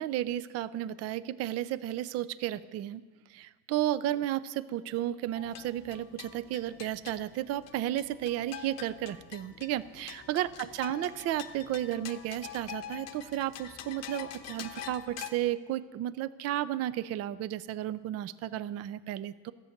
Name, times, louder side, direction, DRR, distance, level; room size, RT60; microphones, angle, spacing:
voice 1, 0.0-3.0 3.3-19.5, right 13 dB, 45° right, 17 dB, 0.4 m, -33 dB
sound 1, 5.3-15.3, left 10 dB, 45° left, 0.9 m, -45 dB
14.0 x 8.4 x 6.5 m, 1.4 s
cardioid pair, 155°, 35 cm